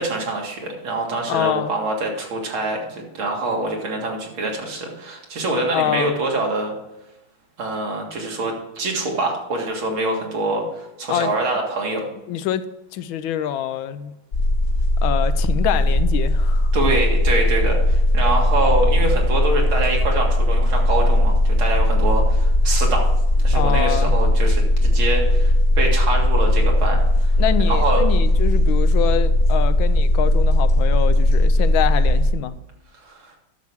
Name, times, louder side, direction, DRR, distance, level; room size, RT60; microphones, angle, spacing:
voice 1, 0.0-6.7 7.6-12.1 16.7-23.1 23.4-27.3 27.7-28.0 33.0-33.2, right 2 dB, 80° right, 0 dB, 2.7 m, -25 dB
voice 2, 1.3-1.7 5.7-6.2 11.1-11.4 12.3-12.6 12.9-14.1 15.0-17.0 23.5-24.1 27.4-32.5, left 10 dB, 85° left, 12 dB, 1.4 m, -25 dB
sound 1, 14.3-32.3, left 1 dB, 50° left, 1.4 m, -18 dB
10.5 x 6.9 x 4.7 m, 0.95 s
omnidirectional pair, 2.2 m